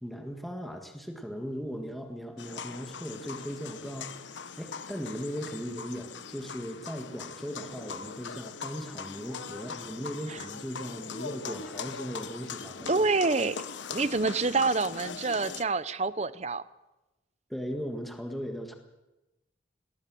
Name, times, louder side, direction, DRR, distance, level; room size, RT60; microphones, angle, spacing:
voice 1, 0.0-13.0 17.5-18.7, equal, ahead, 3 dB, 1.7 m, -38 dB
sound 1, 2.4-15.7, left 6 dB, 85° left, 1.0 m, -41 dB
voice 2, 12.9-13.6 13.9-16.6, right 3 dB, 35° right, 16 dB, 0.7 m, -27 dB
20.0 x 18.5 x 7.7 m, 1.0 s
head